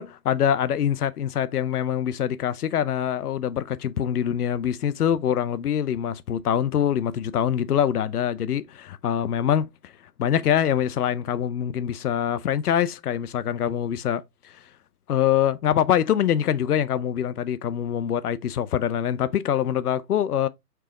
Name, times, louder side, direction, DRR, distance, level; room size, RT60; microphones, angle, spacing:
voice 1, 0.0-9.9 10.2-14.2 15.1-20.5, left 9 dB, 70° left, 0.7 m, -24 dB
4.6 x 3.0 x 3.7 m
hypercardioid pair, 160°, 48 cm